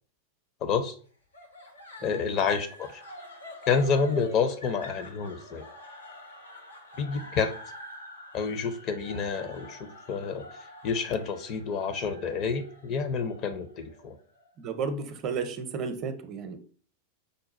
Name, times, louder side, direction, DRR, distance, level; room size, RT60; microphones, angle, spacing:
voice 1, 0.6-0.9 2.0-3.0 3.7-5.6 7.0-7.5 8.3-10.5 10.8-14.2, left 5 dB, 35° left, 9 dB, 0.6 m, -29 dB
sound 1, 1.3-14.5, left 1 dB, 80° left, 1.0 m, -46 dB
voice 2, 14.6-16.6, right 5 dB, 35° right, 8 dB, 0.6 m, -33 dB
5.3 x 2.3 x 4.1 m, 0.42 s
figure-of-eight pair, 90°, 0 cm